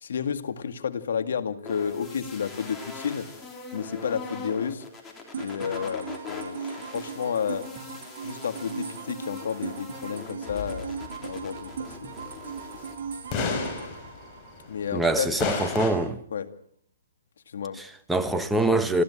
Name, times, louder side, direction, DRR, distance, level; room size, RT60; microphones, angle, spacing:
voice 1, 0.0-3.3 3.7-4.8 5.4-7.6 8.2-12.2 13.5-13.7 14.7-15.3 16.3-16.5 17.5-17.8, left 7 dB, 70° left, 2.2 m, -31 dB
sound 1, 1.6-13.0, left 4 dB, 10° left, 4.0 m, -42 dB
sound 2, 5.3-15.0, right 6 dB, 50° right, 4.8 m, -39 dB
sound 3, 10.5-12.2 12.6-12.7 13.3-15.1 15.4-15.9, left 4 dB, 25° left, 5.5 m, -32 dB
voice 2, 14.9-16.2 17.8-19.0, right 2 dB, 5° right, 1.4 m, -24 dB
29.5 x 14.0 x 8.8 m
hypercardioid pair, 150°, 0 cm